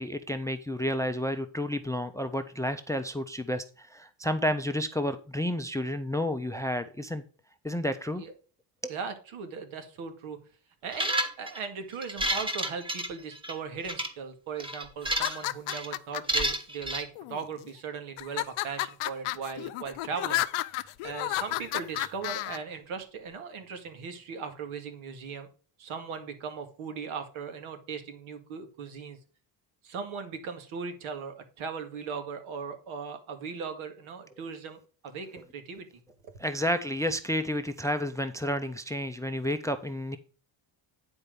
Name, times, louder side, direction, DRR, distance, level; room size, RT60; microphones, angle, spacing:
voice 1, 0.0-7.2 7.6-8.2 8.8-8.9 36.4-40.2, equal, 5° left, 10 dB, 0.4 m, -31 dB
voice 2, 8.9-10.4 10.8-25.5 25.8-29.2 29.8-35.9 36.2-36.3, right 5 dB, 75° right, 7 dB, 2.0 m, -38 dB
sound 1, 10.9-11.6 12.0-13.5 13.8-14.1 14.6-15.4 15.7-15.9 16.3-17.0, right 1 dB, 10° right, 1.2 m, -30 dB
sound 2, 15.1-16.4 17.2-17.7 18.2-22.6, left 16 dB, 85° left, 0.7 m, -32 dB
9.8 x 4.5 x 5.2 m, 0.39 s
cardioid pair, 130°, 49 cm